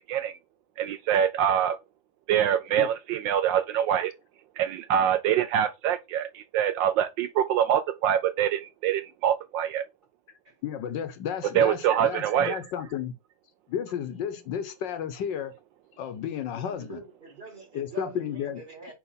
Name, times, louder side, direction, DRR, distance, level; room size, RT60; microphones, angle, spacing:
voice 1, 0.8-1.8 2.3-4.1 4.6-9.8 11.5-12.6, right 9 dB, 75° right, 1.2 m, -25 dB
voice 2, 10.6-13.1 13.7-15.5 16.0-17.0 17.7-18.6, left 8 dB, 70° left, 1.3 m, -32 dB
voice 3, 16.6-18.9, right 4 dB, 25° right, 2.5 m, -45 dB
6.0 x 3.4 x 5.5 m
omnidirectional pair, 2.2 m